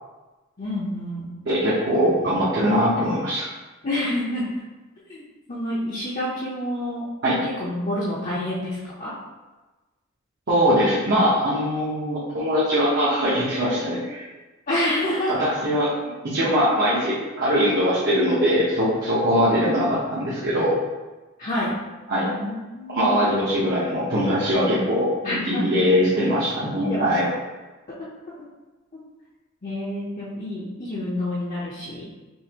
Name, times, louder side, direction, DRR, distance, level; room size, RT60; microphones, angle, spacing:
voice 1, 0.6-1.3 3.8-4.4 5.1-5.2 5.5-7.1 7.4-9.1 14.7-15.5 21.4-21.7 22.3-23.4 25.2-25.6 26.9-27.1 28.9-29.0 29.6-32.0, left 1 dB, 40° left, -8 dB, 0.8 m, -28 dB
voice 2, 1.4-3.5 7.2-7.4 10.5-14.2 15.3-15.9 16.2-20.7 22.1-22.3 22.9-27.3, equal, 55° right, -9 dB, 1.0 m, -21 dB
5.5 x 2.6 x 2.9 m, 1.2 s
head